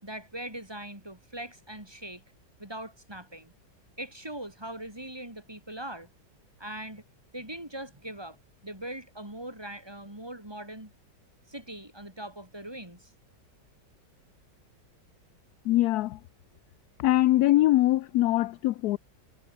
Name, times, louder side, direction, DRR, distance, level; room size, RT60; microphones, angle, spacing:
voice 1, 0.0-2.2 2.6-3.5 4.0-6.1 6.6-7.0 7.3-8.4 8.6-10.9 11.5-13.1, right 1 dB, 15° right, 4.5 m, -41 dB
voice 2, 15.7-16.2 17.0-19.0, left 15 dB, 70° left, 1.0 m, -23 dB
omnidirectional pair, 1.9 m